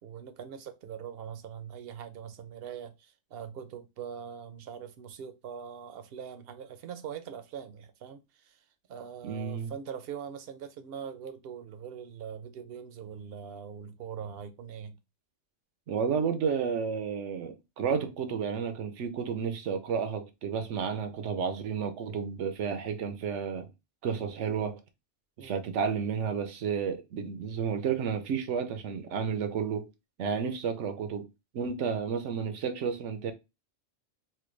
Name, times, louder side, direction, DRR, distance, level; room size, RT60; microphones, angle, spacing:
voice 1, 0.0-8.6 8.9-15.0 25.4-25.6, right 8 dB, 60° right, 0.8 m, -42 dB
voice 2, 9.2-9.7 15.9-23.7 24.0-24.8 25.4-29.9 30.2-31.3 31.5-33.3, right 6 dB, 80° right, 1.0 m, -31 dB
4.4 x 2.2 x 3.2 m
omnidirectional pair, 1.2 m